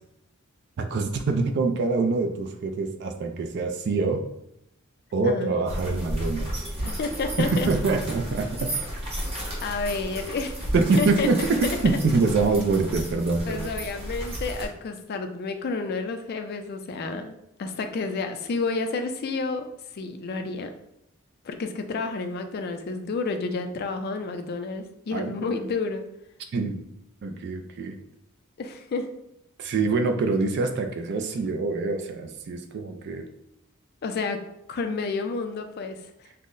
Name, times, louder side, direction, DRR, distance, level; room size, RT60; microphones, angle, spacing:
voice 1, 0.8-4.2 5.1-6.5 7.4-8.7 10.7-13.7 25.1-25.3 26.5-26.8 27.2-28.0 29.6-33.3, right 3 dB, 50° right, 6 dB, 0.3 m, -25 dB
sound 1, 5.7-14.7, equal, 25° right, 0.9 m, -33 dB
voice 2, 6.8-7.7 9.6-10.5 11.0-11.3 11.8-12.0 13.5-19.7 19.9-20.7 21.4-26.0 28.6-29.1 34.0-34.4 34.7-36.0, left 4 dB, 45° left, 6 dB, 0.4 m, -30 dB
5.4 x 2.1 x 2.5 m, 0.81 s
head